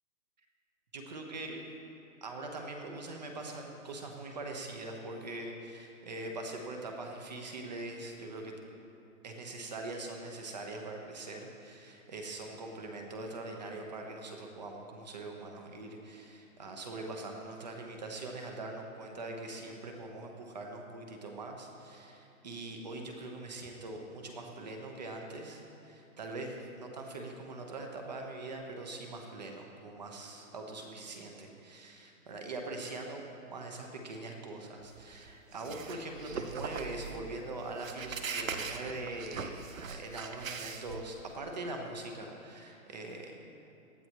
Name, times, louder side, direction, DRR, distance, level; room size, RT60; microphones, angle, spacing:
voice 1, 0.9-1.6 2.2-8.5 9.2-39.5 39.8-43.4, right 2 dB, 30° right, 2 dB, 1.1 m, -42 dB
sound 1, 34.8-41.3, right 5 dB, 65° right, 1.0 m, -41 dB
18.0 x 11.5 x 3.1 m, 2.7 s
hypercardioid pair, 175°, 43 cm